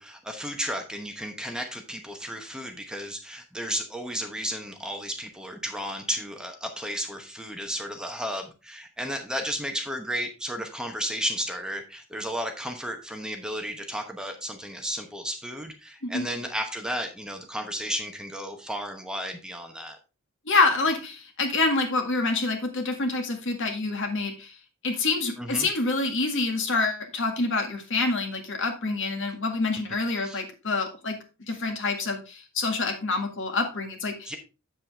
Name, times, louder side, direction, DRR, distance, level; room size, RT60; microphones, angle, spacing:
voice 1, 0.0-20.0 25.4-25.7 30.2-30.4 34.3-34.4, equal, 5° right, 4 dB, 0.9 m, -33 dB
voice 2, 20.5-24.5 24.8-31.2 31.5-34.3, left 3 dB, 60° left, 5 dB, 1.8 m, -27 dB
7.5 x 7.5 x 3.4 m, 0.30 s
head